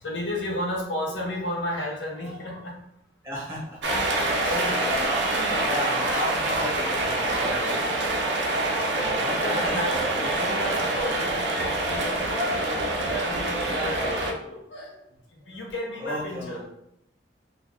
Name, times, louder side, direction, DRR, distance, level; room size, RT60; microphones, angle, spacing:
voice 1, 0.0-2.8 4.4-4.9 6.6-7.0 7.3-7.8 9.3-10.0 10.4-12.6 13.1-15.0 15.5-16.6, left 1 dB, 75° left, -1 dB, 0.7 m, -33 dB
voice 2, 3.2-3.8 4.3-7.8 9.2-10.3 13.6-14.2 16.0-16.7, equal, 15° right, -6 dB, 1.1 m, -33 dB
sound 1, 3.8-14.3, right 2 dB, 70° right, 0.4 m, -26 dB
2.4 x 2.4 x 3.3 m, 0.78 s
head